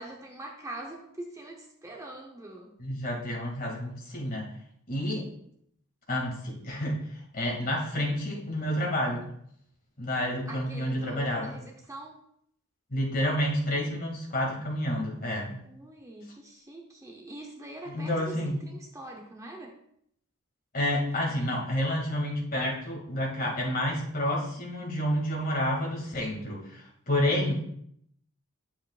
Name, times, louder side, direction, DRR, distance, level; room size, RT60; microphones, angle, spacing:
voice 1, 0.0-2.7 10.5-12.2 15.6-18.3 18.6-19.8, right 1 dB, 15° right, 1 dB, 0.7 m, -43 dB
voice 2, 2.8-4.5 4.9-5.3 6.1-9.3 10.0-11.6 12.9-15.6 17.9-18.6 20.7-27.6, left 1 dB, 40° left, -2 dB, 2.2 m, -29 dB
10.0 x 7.1 x 2.4 m, 0.70 s
head